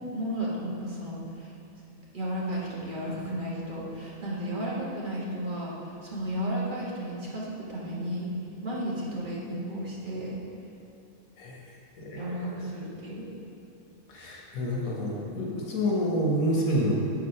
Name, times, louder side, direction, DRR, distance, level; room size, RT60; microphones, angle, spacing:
voice 1, 0.0-1.5 2.1-8.3 8.6-10.4 12.2-13.3, right 1 dB, 40° right, -6 dB, 1.5 m, -33 dB
voice 2, 12.0-12.4 12.7-12.8 14.1-17.0, equal, 80° left, -2 dB, 1.5 m, -28 dB
6.7 x 4.8 x 5.5 m, 2.6 s
omnidirectional pair, 1.4 m